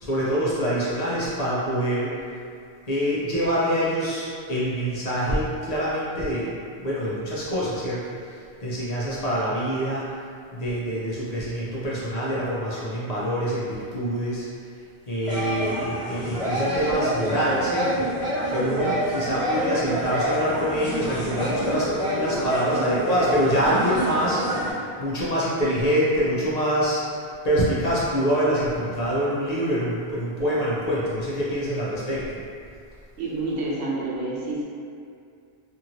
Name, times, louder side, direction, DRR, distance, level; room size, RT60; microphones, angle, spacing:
voice 1, 0.0-2.2 2.9-10.1 10.5-14.5 15.1-18.1 18.5-27.0 27.4-32.3, equal, 50° left, -8 dB, 0.5 m, -25 dB
sound 1, 15.2-24.7, equal, 10° left, 1.0 m, -27 dB
voice 2, 33.2-34.6, right 2 dB, 90° right, -5 dB, 0.9 m, -28 dB
2.8 x 2.7 x 2.5 m, 2.4 s
omnidirectional pair, 1.1 m